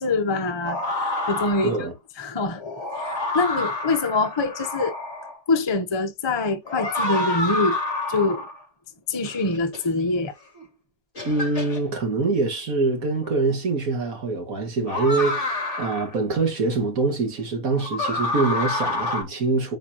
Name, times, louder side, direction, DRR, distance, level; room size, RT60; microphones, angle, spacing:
voice 1, 0.0-1.9 2.2-2.6 3.0-5.0 5.5-7.8 8.1-8.5 9.1-10.3, left 3 dB, 25° left, 0.6 m, -24 dB
sound 1, 0.6-1.9 2.6-5.4 6.7-8.6 9.2-9.8 10.6-10.7 11.2-11.8 13.2-13.3 14.9-16.1 17.7-19.2, left 2 dB, 40° left, 3.2 m, -28 dB
voice 2, 1.6-1.9 11.2-19.8, right 3 dB, 50° right, 2.2 m, -24 dB
9.4 x 4.1 x 2.9 m
omnidirectional pair, 1.9 m